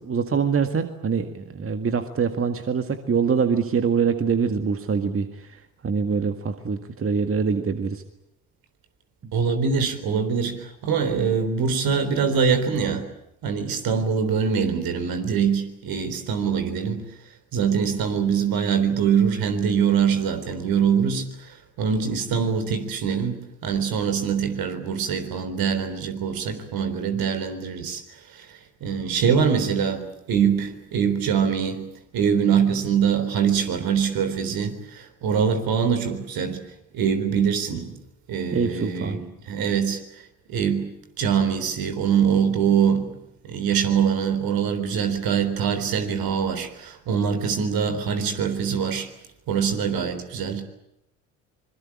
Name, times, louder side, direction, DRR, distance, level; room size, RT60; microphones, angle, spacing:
voice 1, 0.0-8.0 9.2-9.3 38.5-39.2, right 6 dB, 35° right, 1.9 m, -24 dB
voice 2, 9.3-13.1 13.4-17.1 17.5-21.5 21.8-28.0 28.4-31.9 32.1-36.6 36.9-37.9 38.3-40.0 40.5-43.2 43.4-49.1 49.5-50.6, right 7 dB, 60° right, 3.9 m, -23 dB
25.5 x 22.5 x 8.7 m
hypercardioid pair, 60°, 40 cm